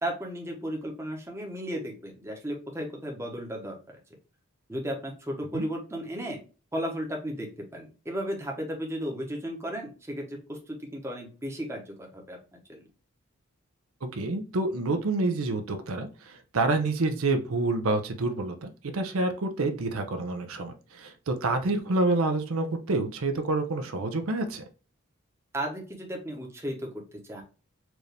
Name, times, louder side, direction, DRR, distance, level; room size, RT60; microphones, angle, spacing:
voice 1, 0.0-4.0 4.7-6.4 6.7-12.8 25.5-27.0 27.3-27.4, equal, 10° right, 0 dB, 0.9 m, -35 dB
voice 2, 14.1-24.6, right 2 dB, 80° right, 6 dB, 0.7 m, -28 dB
4.6 x 2.6 x 3.2 m, 0.34 s
head